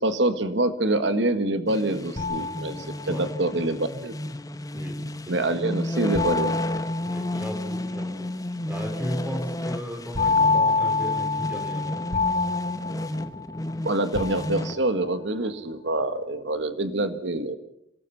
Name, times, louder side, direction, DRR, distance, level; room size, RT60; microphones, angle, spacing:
voice 1, 0.0-4.1 5.3-6.5 13.8-17.6, right 2 dB, 70° right, 10 dB, 1.7 m, -26 dB
sound 1, 1.7-14.8, left 1 dB, 20° left, 1.2 m, -32 dB
sound 2, 2.2-3.4 6.1-7.8 10.1-13.7 14.1-15.1, left 4 dB, 35° left, 4.7 m, -27 dB
voice 2, 4.7-5.6 7.0-8.3 8.7-12.1, equal, 10° right, 6 dB, 4.1 m, -36 dB
27.0 x 19.5 x 5.9 m, 0.78 s
head